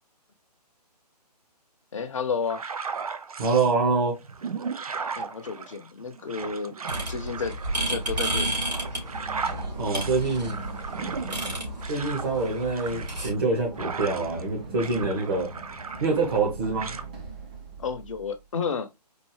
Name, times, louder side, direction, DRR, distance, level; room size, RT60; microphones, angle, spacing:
voice 1, 1.9-2.6 5.1-6.8 7.0-7.6 7.9-8.6 17.8-18.9, left 5 dB, 50° left, 0.7 m, -31 dB
sound 1, 2.4-3.7 4.2-14.5 14.7-16.5 16.8-17.0, right 5 dB, 60° right, 0.5 m, -36 dB
voice 2, 3.4-4.2 9.8-10.6 11.9-15.5 16.0-16.9, right 3 dB, 35° right, 1.2 m, -25 dB
sound 2, 6.9-13.3, right 1 dB, 80° right, 2.7 m, -32 dB
Run, 8.7-18.5, right 3 dB, 10° right, 0.4 m, -42 dB
4.4 x 2.5 x 3.2 m
figure-of-eight pair, 140°, 21 cm